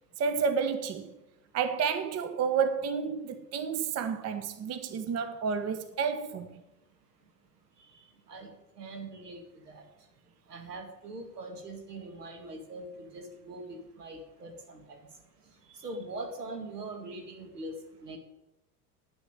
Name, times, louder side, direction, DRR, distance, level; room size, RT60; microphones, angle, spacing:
voice 1, 0.2-1.2 1.5-6.6, right 6 dB, 35° right, 0.9 m, -30 dB
voice 2, 8.3-9.9 10.5-15.0 15.7-17.8 18.0-18.2, right 2 dB, 80° right, 2.1 m, -42 dB
9.6 x 6.3 x 8.7 m
figure-of-eight pair, 70°, 46 cm